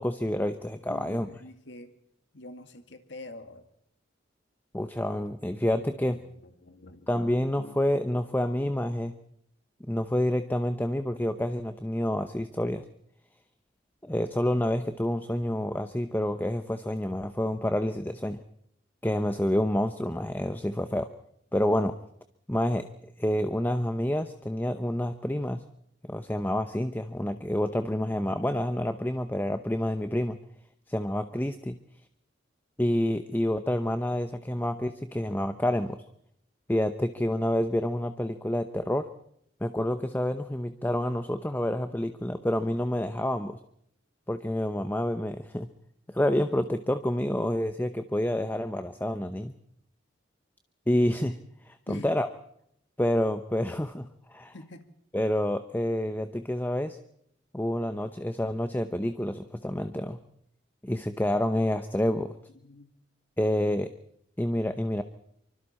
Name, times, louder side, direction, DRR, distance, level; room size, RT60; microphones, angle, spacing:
voice 1, 0.0-1.3 4.7-6.2 7.1-9.1 9.9-12.8 14.0-18.4 19.0-21.1 21.5-21.9 22.5-22.9 23.2-25.6 26.1-30.4 30.9-31.8 32.8-36.0 36.7-39.1 39.6-43.6 44.3-45.7 46.1-49.5 50.9-51.4 51.6-52.3 53.0-54.5 55.1-57.0 57.5-60.2 60.8-62.3 63.4-63.9 64.4-65.0, left 1 dB, 10° left, 9 dB, 0.8 m, -28 dB
voice 2, 0.9-1.9 2.3-3.7 6.0-7.1 7.6-7.9 51.9-52.1 54.5-54.9 62.6-62.9, left 2 dB, 65° left, 7 dB, 2.0 m, -45 dB
26.0 x 24.5 x 4.3 m, 0.72 s
head